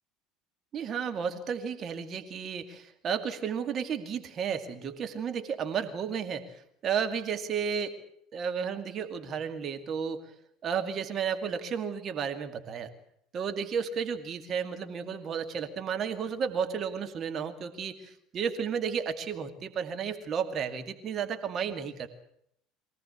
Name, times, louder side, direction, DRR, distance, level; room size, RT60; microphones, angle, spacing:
voice 1, 0.7-8.0 8.3-10.3 10.6-12.9 13.3-22.1, right 7 dB, 40° right, 7 dB, 2.3 m, -33 dB
23.5 x 17.0 x 8.2 m, 0.70 s
figure-of-eight pair, 65°, 0 cm